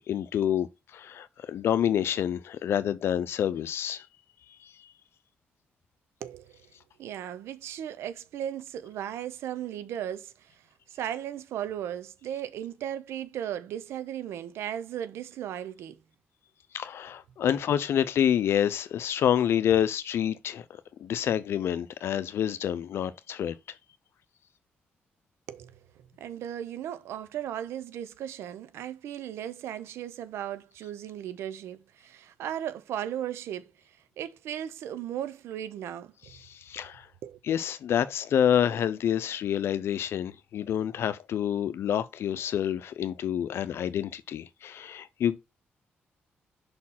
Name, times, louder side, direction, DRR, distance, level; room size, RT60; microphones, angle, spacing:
voice 1, 0.1-4.1 4.6-4.7 16.7-23.5 36.5-37.1 37.5-45.4, left 9 dB, 75° left, 0.6 m, -28 dB
voice 2, 6.2-6.7 7.0-16.0 17.5-17.6 25.5-25.8 26.2-36.3 36.8-36.9 37.2-37.4, right 10 dB, 90° right, 0.7 m, -36 dB
5.2 x 4.3 x 5.6 m
cardioid pair, 70°, 4 cm